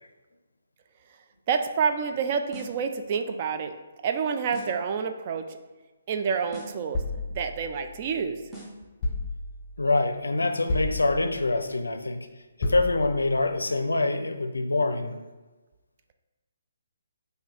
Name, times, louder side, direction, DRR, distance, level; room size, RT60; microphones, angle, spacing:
voice 1, 1.5-3.7 4.0-5.4 6.1-7.0 7.3-8.4, right 6 dB, 35° right, 6 dB, 0.3 m, -28 dB
sound 1, 2.5-2.9 4.5-4.9 6.5-6.9 8.5-8.9, right 2 dB, 5° right, 0.8 m, -43 dB
sound 2, 6.9-8.3 9.0-9.9 10.7-11.6 12.6-13.4, left 2 dB, 25° left, 0.7 m, -32 dB
voice 2, 9.8-12.3 12.6-15.2, left 2 dB, 80° left, 7 dB, 0.4 m, -25 dB
3.9 x 2.7 x 4.3 m, 1.2 s
figure-of-eight pair, 140°, 0 cm